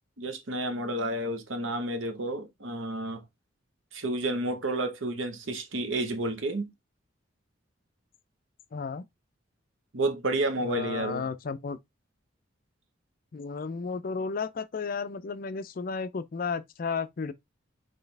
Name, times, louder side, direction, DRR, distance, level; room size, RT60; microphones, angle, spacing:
voice 1, 0.2-3.2 3.9-6.7 9.9-11.3, right 1 dB, 90° right, 1.0 m, -30 dB
voice 2, 8.7-9.0 10.6-11.8 13.3-17.3, left 5 dB, 45° left, 0.4 m, -33 dB
4.3 x 3.3 x 3.2 m
head